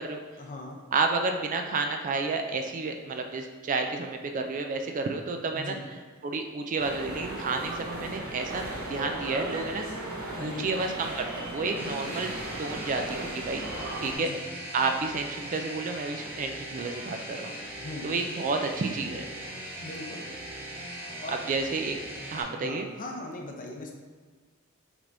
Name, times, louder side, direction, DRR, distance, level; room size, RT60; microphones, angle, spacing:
voice 1, 0.4-0.8 5.5-5.8 10.4-10.7 11.8-12.2 14.1-14.4 17.8-18.1 19.8-20.3 21.2-21.4 22.6-23.9, left 2 dB, 40° left, 2 dB, 0.6 m, -39 dB
voice 2, 0.9-5.8 6.2-9.9 10.4-12.3 12.6-13.6 14.0-14.3 14.7-17.5 18.0-19.2 21.5-22.0 22.3-22.9, right 3 dB, 40° right, 5 dB, 0.3 m, -30 dB
sound 1, 6.8-14.2, right 1 dB, 70° right, 0.9 m, -37 dB
sound 2, 11.8-22.4, right 1 dB, 10° right, 0.7 m, -40 dB
5.9 x 3.4 x 2.6 m, 1.4 s
head